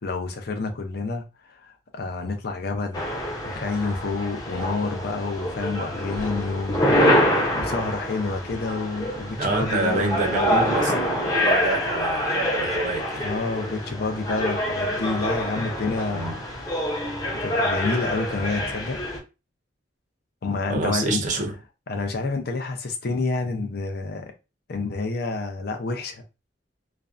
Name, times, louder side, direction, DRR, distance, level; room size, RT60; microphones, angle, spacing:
voice 1, 0.0-3.1 3.4-10.7 13.2-16.4 17.4-19.0 20.4-21.2 21.9-24.3 24.7-26.2, left 3 dB, 60° left, 0.5 m, -29 dB
sound 1, 2.9-19.2, equal, 20° left, 0.6 m, -26 dB
voice 2, 9.4-13.3 16.1-16.3 20.7-21.5, right 3 dB, 45° right, 0.5 m, -27 dB
2.5 x 2.1 x 2.4 m
head